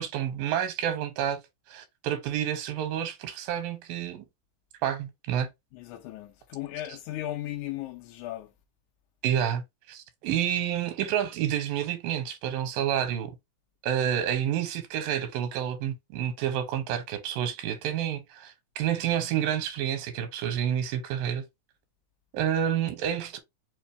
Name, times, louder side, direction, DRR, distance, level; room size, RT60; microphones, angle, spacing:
voice 1, 0.0-1.4 1.7-4.3 4.8-5.5 9.2-9.6 9.9-13.3 13.8-21.4 22.3-23.4, right 10 dB, 90° right, 2.6 m, -29 dB
voice 2, 5.7-8.5, left 14 dB, 80° left, 1.9 m, -36 dB
5.3 x 2.6 x 3.4 m
omnidirectional pair, 3.9 m